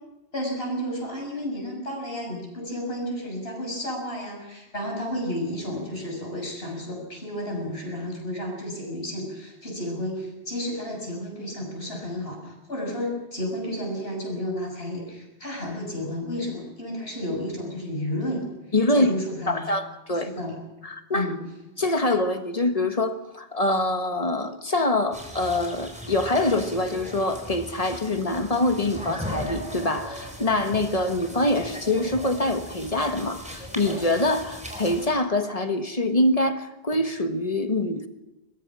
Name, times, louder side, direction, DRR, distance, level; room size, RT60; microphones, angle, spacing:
voice 1, 0.3-18.4 18.9-19.7 20.1-20.6 21.1-21.4, left 1 dB, 70° left, 0 dB, 7.2 m, -32 dB
voice 2, 18.7-19.1 19.5-20.3 20.8-21.3 21.8-38.1, left 2 dB, 35° left, 7 dB, 1.5 m, -24 dB
sound 1, 25.1-35.1, equal, 5° right, 4.4 m, -38 dB
22.5 x 21.5 x 6.2 m, 0.99 s
omnidirectional pair, 1.0 m